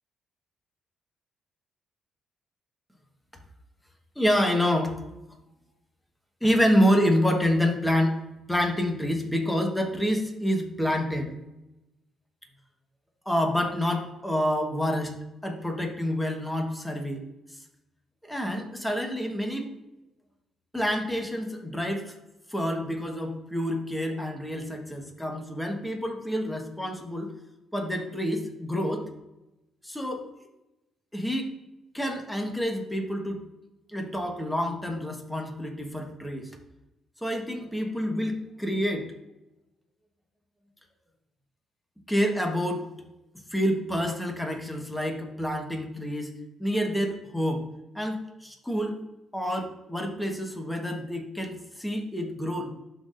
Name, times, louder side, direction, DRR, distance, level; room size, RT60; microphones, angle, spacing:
voice 1, 4.1-5.0 6.4-8.2 8.5-11.3 13.2-15.2 15.4-17.3 18.2-19.7 20.7-22.1 22.5-27.3 27.7-29.1 29.8-30.2 31.1-31.5 31.9-33.4 33.9-36.5 37.2-39.1 42.1-42.9 43.5-46.3 46.6-47.6 47.9-49.0 49.3-52.7, equal, 5° left, 2 dB, 1.4 m, -28 dB
12.0 x 4.1 x 2.6 m, 0.94 s
cardioid pair, 90°, 0 cm